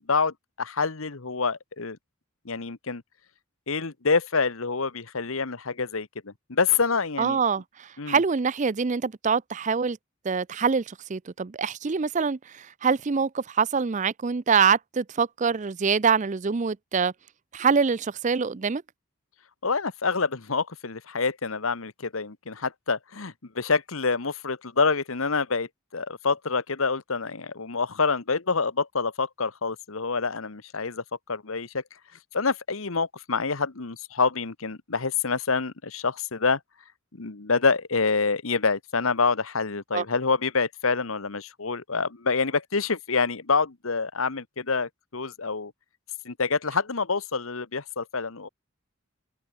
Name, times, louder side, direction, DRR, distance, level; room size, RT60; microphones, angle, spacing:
voice 1, 0.0-2.0 2.4-3.0 3.7-7.4 8.0-8.2 19.6-31.0 31.3-31.8 32.3-36.6 37.1-45.7 46.2-48.5, left 4 dB, 70° left, 1.3 m, -27 dB
voice 2, 7.2-10.0 10.2-17.1 17.5-18.8 39.9-40.0, right 5 dB, 35° right, 0.5 m, -25 dB
open air
head